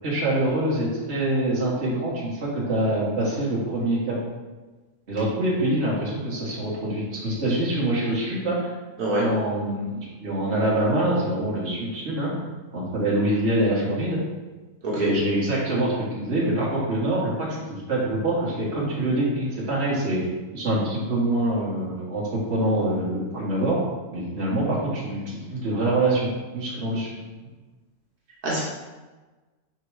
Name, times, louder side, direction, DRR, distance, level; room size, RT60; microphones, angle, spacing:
voice 1, 0.0-4.2 5.1-8.6 9.2-12.3 12.7-14.2 14.9-20.3 20.5-23.8 24.1-27.2, right 1 dB, 45° right, -6 dB, 1.9 m, -25 dB
voice 2, 9.0-9.3 14.8-15.1 28.4-28.6, right 1 dB, 75° right, -6 dB, 1.8 m, -24 dB
4.8 x 4.6 x 4.8 m, 1.2 s
omnidirectional pair, 1.6 m